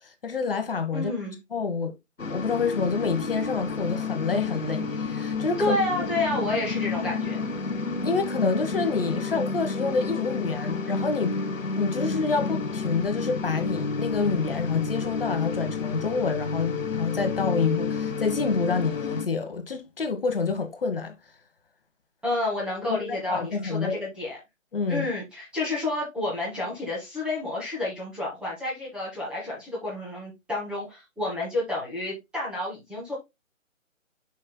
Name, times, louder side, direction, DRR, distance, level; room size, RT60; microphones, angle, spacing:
voice 1, 0.0-1.9 2.3-5.8 8.0-11.3 11.7-21.1 22.9-24.0 24.7-25.1, left 4 dB, 45° left, 1.2 m, -27 dB
voice 2, 0.9-1.3 5.6-7.4 22.2-24.4 24.9-33.1, left 2 dB, ahead, 1.3 m, -30 dB
sound 1, 2.2-19.3, left 4 dB, 75° left, 1.1 m, -30 dB
10.0 x 5.5 x 2.2 m
figure-of-eight pair, 150°, 40 cm